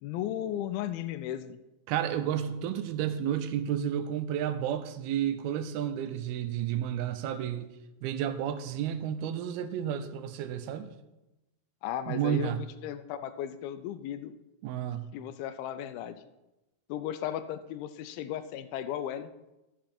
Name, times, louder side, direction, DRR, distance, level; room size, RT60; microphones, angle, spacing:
voice 1, 0.0-1.6 11.8-14.4 15.1-16.2 16.9-19.3, left 11 dB, 85° left, 2.4 m, -35 dB
voice 2, 1.9-7.7 8.0-10.9 12.1-12.6 14.6-15.1, right 10 dB, 85° right, 2.6 m, -31 dB
11.5 x 7.6 x 4.3 m
omnidirectional pair, 4.3 m